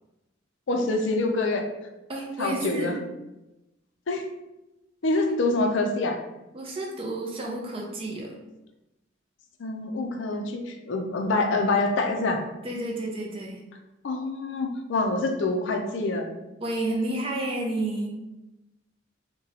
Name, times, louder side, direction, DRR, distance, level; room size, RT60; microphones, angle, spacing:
voice 1, 0.7-1.7 2.4-3.0 4.1-4.2 5.0-6.2 9.6-12.4 14.0-16.3, left 2 dB, 70° left, 4 dB, 0.4 m, -26 dB
voice 2, 2.1-3.0 6.5-8.4 12.6-13.6 16.6-18.1, right 1 dB, 30° right, -1 dB, 0.4 m, -30 dB
3.9 x 2.2 x 2.8 m, 0.98 s
head